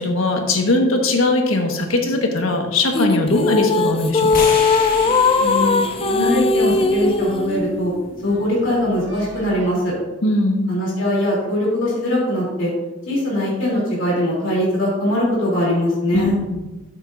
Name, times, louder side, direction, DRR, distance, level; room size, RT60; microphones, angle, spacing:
voice 1, 0.0-4.5 10.2-10.7 16.1-16.7, left 2 dB, 90° left, 3 dB, 1.4 m, -20 dB
sound 1, 2.9-7.5, left 4 dB, 30° left, 0.5 m, -18 dB
sound 2, 3.8-9.7, left 1 dB, 60° right, 2.4 m, -34 dB
sound 3, 4.3-8.5, left 4 dB, 45° left, 1.4 m, -33 dB
voice 2, 5.4-5.8 6.1-7.9 8.2-9.9 10.7-12.7 13.1-16.3, left 1 dB, 65° left, -4 dB, 3.1 m, -21 dB
12.5 x 7.6 x 2.6 m, 1.1 s
head